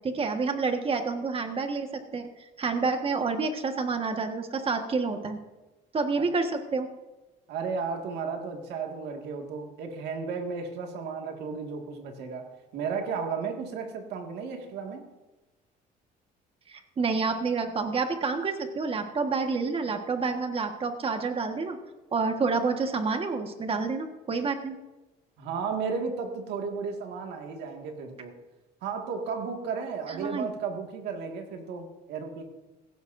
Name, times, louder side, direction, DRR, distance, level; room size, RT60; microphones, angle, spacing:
voice 1, 0.0-2.3 2.6-5.4 5.9-6.9 16.7-21.8 22.1-24.8 30.1-30.5, right 4 dB, 35° right, 5 dB, 1.5 m, -28 dB
voice 2, 7.5-15.1 25.4-28.3 28.8-32.4, right 5 dB, 80° right, 3 dB, 2.0 m, -34 dB
17.0 x 16.0 x 2.7 m, 1.1 s
cardioid pair, 110°, 17 cm